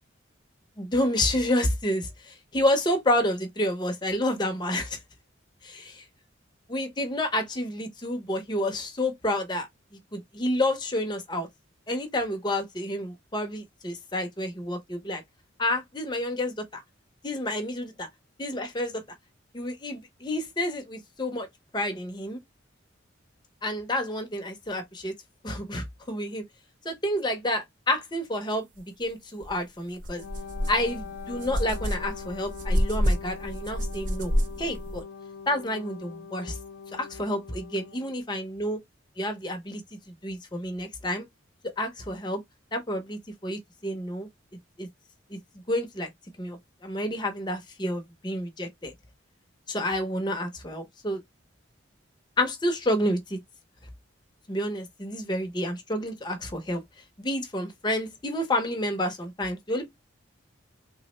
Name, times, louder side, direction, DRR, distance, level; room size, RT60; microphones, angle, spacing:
voice 1, 0.8-5.0 5.6-6.0 6.7-9.7 9.9-11.5 11.9-15.2 15.6-16.8 17.2-18.1 18.4-19.0 19.5-21.5 21.7-22.4 23.6-25.1 25.4-26.4 26.8-28.6 29.0-30.2 30.7-34.3 34.6-35.0 35.5-36.6 36.9-38.8 39.2-39.8 40.2-41.2 41.8-42.4 42.7-44.3 44.8-44.9 45.3-45.4 45.7-46.1 46.4-48.9 49.7-51.2 52.4-53.4 54.5-56.8 57.2-60.0, left 1 dB, 20° left, 0.6 m, -29 dB
sound 1, 29.4-29.5 30.0-35.0, equal, 40° right, 0.5 m, -28 dB
Wind instrument woodwind instrument, 30.2-38.2, left 6 dB, 75° left, 0.6 m, -42 dB
3.4 x 2.1 x 2.9 m
head